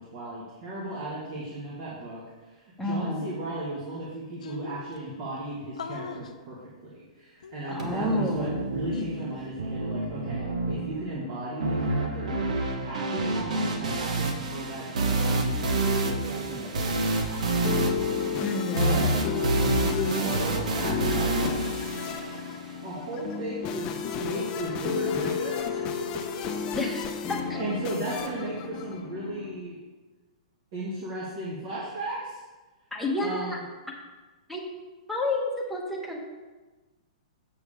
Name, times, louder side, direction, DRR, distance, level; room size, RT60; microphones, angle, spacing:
voice 1, 0.0-12.5 12.8-18.1 18.7-19.2 19.9-21.6 22.8-26.8 27.4-29.8 30.7-32.4 33.2-33.6, right 2 dB, 40° right, -5 dB, 1.7 m, -36 dB
voice 2, 2.8-3.3 7.7-8.6 18.4-19.0 26.7-27.4 32.9-33.6 34.5-34.6 35.1-36.2, left 2 dB, ahead, -2 dB, 1.1 m, -30 dB
sound 1, 3.7-3.8 4.0-4.1 4.4-5.0 5.8-6.3 7.4-8.3 8.9-9.5, left 5 dB, 90° left, 0.7 m, -39 dB
sound 2, 7.8-22.8, right 2 dB, 75° right, 1.4 m, -28 dB
sound 3, 17.3-29.6, left 6 dB, 25° left, 0.7 m, -32 dB
7.7 x 6.9 x 3.6 m, 1.2 s
hypercardioid pair, 150°, 4 cm